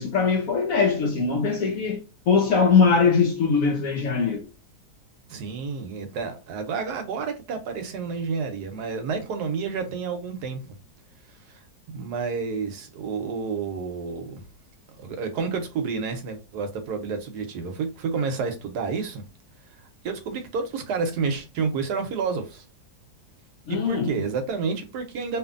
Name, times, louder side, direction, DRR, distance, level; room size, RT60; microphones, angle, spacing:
voice 1, 0.0-4.4 23.7-24.2, left 5 dB, 65° left, 0.9 m, -21 dB
voice 2, 5.3-10.7 11.5-11.6 11.9-14.4 15.0-19.2 20.0-22.6 23.7-25.4, right 5 dB, 75° right, 1.2 m, -30 dB
2.9 x 2.5 x 2.4 m
omnidirectional pair, 1.8 m